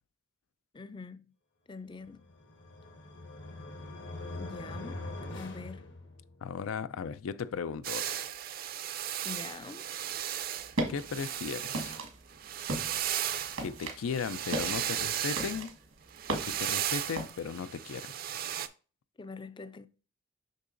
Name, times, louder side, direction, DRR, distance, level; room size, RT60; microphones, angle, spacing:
voice 1, 0.7-1.3 1.7-2.2 4.4-5.0 5.3-5.9 9.2-9.9 19.2-19.9, left 4 dB, 25° left, 0.3 m, -44 dB
sound 1, 2.2-6.5, left 2 dB, 60° left, 1.1 m, -43 dB
voice 2, 6.4-8.3 10.9-12.0 13.6-15.7 16.3-18.1, left 6 dB, 90° left, 0.4 m, -36 dB
sound 2, 7.8-12.0 12.3-15.6 16.1-18.7, right 10 dB, 45° right, 0.4 m, -35 dB
sound 3, 10.6-17.3, right 1 dB, 85° right, 1.4 m, -38 dB
6.5 x 5.7 x 2.5 m
head